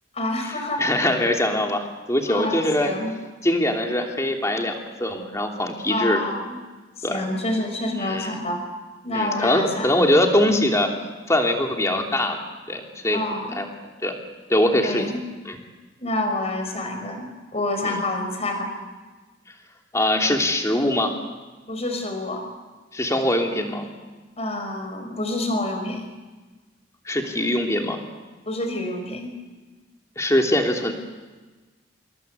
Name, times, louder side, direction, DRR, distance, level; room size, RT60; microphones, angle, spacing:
voice 1, 0.1-0.8 2.3-3.1 5.9-6.6 7.1-8.6 9.0-10.0 13.1-13.6 14.8-15.2 16.0-18.7 21.7-22.5 24.4-26.1 28.4-29.3, left 1 dB, 35° left, 5 dB, 5.3 m, -28 dB
voice 2, 0.8-2.9 3.4-4.7 5.0-6.2 7.0-7.3 8.0-8.4 9.1-10.9 11.3-12.4 12.7-13.2 13.5-13.6 14.0-14.2 14.5-15.1 15.4-15.6 17.8-18.0 19.9-21.1 22.9-23.9 27.0-28.0 30.2-30.9, left 1 dB, 15° left, 2 dB, 3.1 m, -22 dB
26.5 x 23.0 x 8.2 m, 1.3 s
head